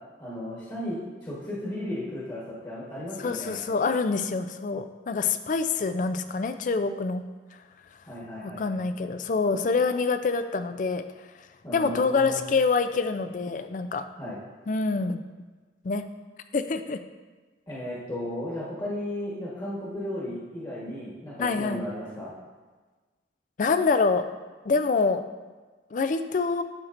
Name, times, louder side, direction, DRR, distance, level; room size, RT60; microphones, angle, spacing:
voice 1, 0.2-3.6 8.0-8.7 11.6-12.5 14.1-14.4 17.7-22.3, left 1 dB, 20° left, -8 dB, 1.2 m, -35 dB
voice 2, 3.2-7.2 8.4-11.0 11.7-14.0 14.7-15.2 15.8-16.0 16.5-17.0 21.4-21.8 23.6-24.2 24.7-25.2 25.9-26.6, left 4 dB, 45° left, 9 dB, 0.3 m, -26 dB
12.0 x 4.4 x 2.5 m, 1.3 s
head